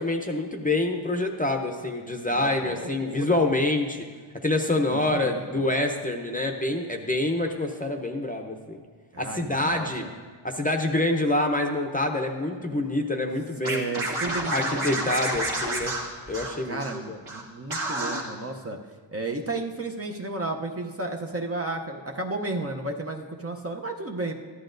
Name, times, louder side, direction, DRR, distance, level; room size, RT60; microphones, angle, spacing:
voice 1, 0.0-4.0 4.4-8.8 9.2-10.0 10.4-13.9 14.5-15.9 16.3-17.2, left 2 dB, 15° left, 3 dB, 0.7 m, -26 dB
voice 2, 2.3-3.4 4.9-5.6 9.1-10.1 13.6-15.0 16.6-18.8 19.1-24.3, right 2 dB, 30° right, 2 dB, 0.7 m, -33 dB
Scratching (performance technique), 13.6-17.0 17.2-17.4 17.7-18.2, right 1 dB, 75° right, 1.5 m, -29 dB
14.0 x 11.0 x 2.6 m, 1.5 s
wide cardioid pair, 110°, 49 cm